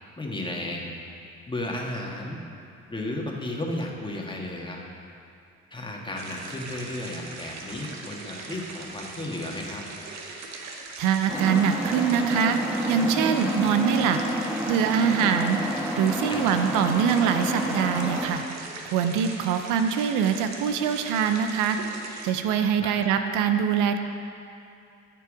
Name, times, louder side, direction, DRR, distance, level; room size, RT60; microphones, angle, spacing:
voice 1, 0.2-0.9 1.5-2.4 2.9-4.8 5.7-9.8 16.3-16.6 22.8-23.0, left 1 dB, 15° left, -1 dB, 1.7 m, -33 dB
sound 1, 6.2-22.3, right 3 dB, 65° right, 1.2 m, -40 dB
voice 2, 11.0-12.6 12.9-14.2 14.7-15.6 16.0-18.4 18.9-21.8 22.2-24.0, right 7 dB, 85° right, 8 dB, 0.6 m, -23 dB
sound 2, 11.3-18.3, equal, 5° right, 1.4 m, -29 dB
14.0 x 4.7 x 5.0 m, 2.5 s
supercardioid pair, 65°, 30 cm